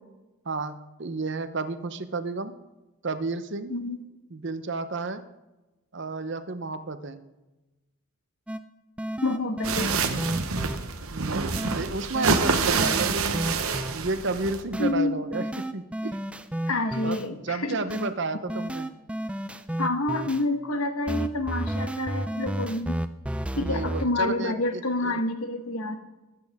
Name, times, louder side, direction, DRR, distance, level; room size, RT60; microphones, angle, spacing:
voice 1, 0.4-2.5 3.0-3.7 4.3-5.2 5.9-7.2 11.1-13.5 13.9-16.2 17.0-18.9 23.5-25.2, right 3 dB, 55° right, 11 dB, 0.8 m, -32 dB
sound 1, 8.5-8.6 9.0-10.8 11.6-11.8 12.1-13.9 14.7-14.9 15.3-17.2 17.9-18.1 18.5-20.4 21.1-24.1, right 1 dB, 5° right, 0.4 m, -31 dB
voice 2, 9.2-9.9 14.8-15.2 16.7-17.8 19.8-23.0 23.6-26.0, left 2 dB, 85° left, 7 dB, 1.3 m, -28 dB
sound 2, 9.6-14.6, right 4 dB, 80° right, 1.0 m, -27 dB
21.0 x 8.7 x 3.6 m, 1.1 s
head